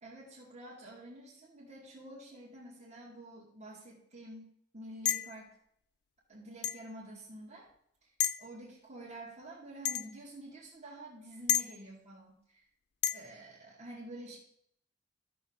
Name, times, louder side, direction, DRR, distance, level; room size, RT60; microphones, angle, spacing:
voice 1, 0.0-5.5 6.3-7.7 8.0-8.1 8.4-12.7 13.1-14.4, right 1 dB, 40° right, -6 dB, 2.3 m, -49 dB
sound 1, 5.1-5.4 6.6-6.8 8.2-8.5 9.8-10.1 11.5-11.7 13.0-13.2, left 11 dB, 65° left, 0.5 m, -30 dB
12.5 x 7.2 x 3.7 m, 0.68 s
head